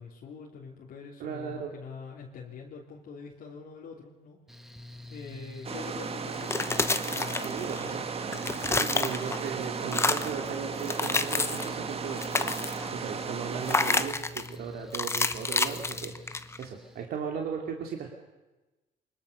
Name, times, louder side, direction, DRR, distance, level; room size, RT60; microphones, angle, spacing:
voice 1, 0.0-4.4 5.1-8.0 8.2-8.6, left 5 dB, 60° left, -2 dB, 3.1 m, -45 dB
voice 2, 1.2-1.7 7.3-8.0 8.6-16.2 16.6-18.1, right 7 dB, 65° right, 2 dB, 2.6 m, -37 dB
Mechanical fan, 4.5-17.0, left 2 dB, ahead, 1.7 m, -45 dB
sound 1, 5.6-14.1, right 6 dB, 35° right, 1.5 m, -35 dB
sound 2, 6.3-7.9 8.2-9.5 9.8-10.4 10.8-11.8 12.1-12.9 13.7-14.5 14.9-16.6, left 3 dB, 15° left, 1.0 m, -29 dB
24.0 x 21.5 x 6.7 m, 1.1 s
cardioid pair, 110°, 17 cm